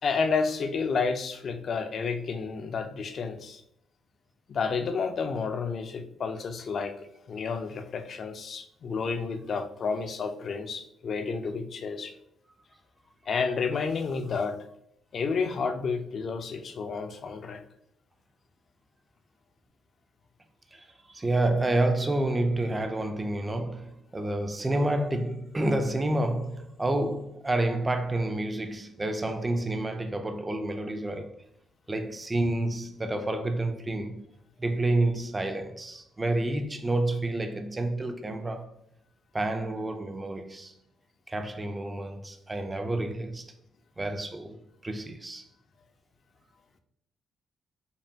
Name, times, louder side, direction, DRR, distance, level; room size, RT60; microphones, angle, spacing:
voice 1, 0.0-3.6 4.5-12.1 13.3-14.6 15.1-17.6, left 5 dB, 55° left, 0.4 m, -30 dB
voice 2, 20.7-31.4 31.9-34.2 34.6-38.7 39.3-40.7 41.3-43.5 44.0-45.5, right 2 dB, 20° right, 0.4 m, -29 dB
5.2 x 2.2 x 2.7 m
cardioid pair, 90°, 0 cm